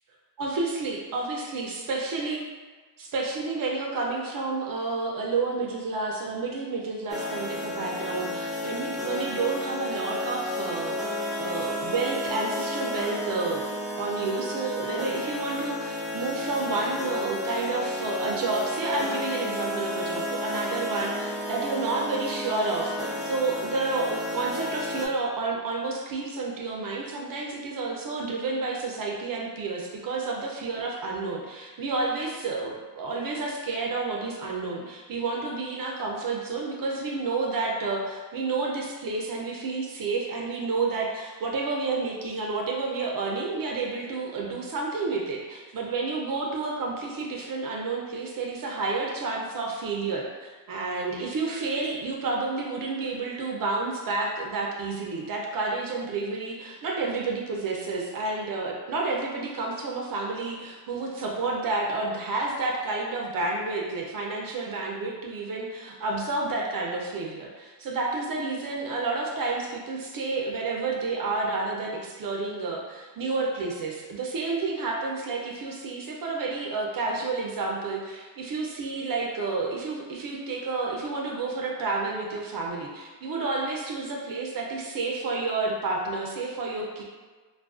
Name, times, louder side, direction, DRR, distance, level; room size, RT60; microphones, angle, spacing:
voice 1, 0.4-2.4 3.0-11.0 11.4-13.6 14.0-87.0, right 3 dB, 50° right, -1 dB, 0.5 m, -30 dB
sound 1, 7.1-25.1, left 1 dB, ahead, 0.4 m, -32 dB
2.4 x 2.2 x 2.4 m, 1.4 s
supercardioid pair, 65°, 44 cm